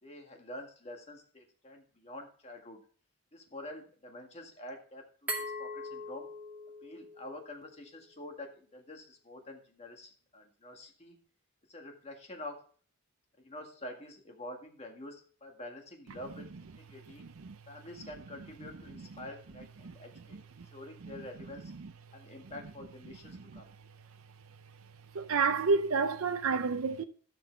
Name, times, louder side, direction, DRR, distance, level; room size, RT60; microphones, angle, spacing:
voice 1, 0.0-2.8 3.3-5.0 5.6-6.3 6.8-11.2 11.7-12.6 13.4-16.5 16.9-17.2 17.7-20.4 20.7-21.6 22.1-23.7, left 1 dB, 30° left, 1.9 m, -47 dB
Glass, 5.3-8.1, equal, 5° right, 2.3 m, -41 dB
voice 2, 17.2-17.6 18.9-19.1 19.8-20.7 21.0-21.3 21.6-21.9 23.3-23.6 25.1-27.0, right 4 dB, 65° right, 0.6 m, -31 dB
14.5 x 6.0 x 3.4 m
head